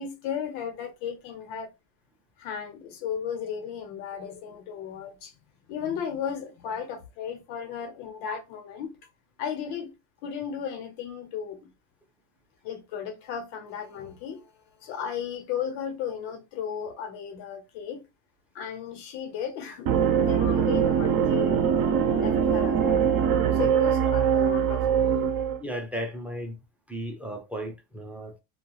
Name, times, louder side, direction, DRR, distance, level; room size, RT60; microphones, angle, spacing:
voice 1, 0.0-1.7 2.4-5.3 5.7-8.9 9.4-9.9 10.2-11.7 12.6-14.5 14.8-18.0 18.5-21.7 22.2-23.1 23.5-25.3, left 8 dB, 85° left, 1.0 m, -35 dB
sound 1, 19.9-25.6, right 7 dB, 60° right, 0.6 m, -23 dB
voice 2, 25.6-26.6 26.9-28.4, equal, 5° right, 0.5 m, -35 dB
2.3 x 2.3 x 3.1 m
cardioid pair, 140°, 40 cm